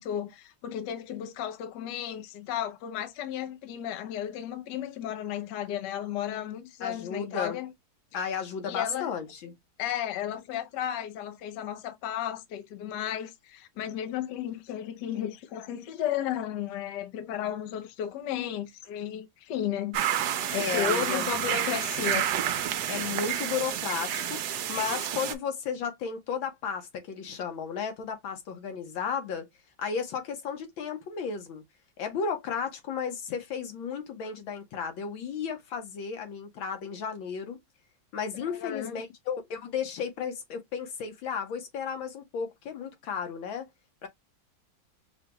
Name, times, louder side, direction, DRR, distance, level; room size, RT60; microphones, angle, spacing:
voice 1, 0.0-7.7 8.7-9.1 9.8-22.3 38.5-39.0, left 10 dB, 70° left, 1.3 m, -34 dB
voice 2, 6.8-7.6 8.1-9.5 20.5-21.3 22.9-29.5 29.8-31.6 32.0-37.6 38.1-43.7 44.0-44.1, left 6 dB, 85° left, 1.9 m, -34 dB
sound 1, 19.9-25.3, right 10 dB, 70° right, 1.1 m, -29 dB
5.6 x 2.3 x 2.9 m
omnidirectional pair, 2.1 m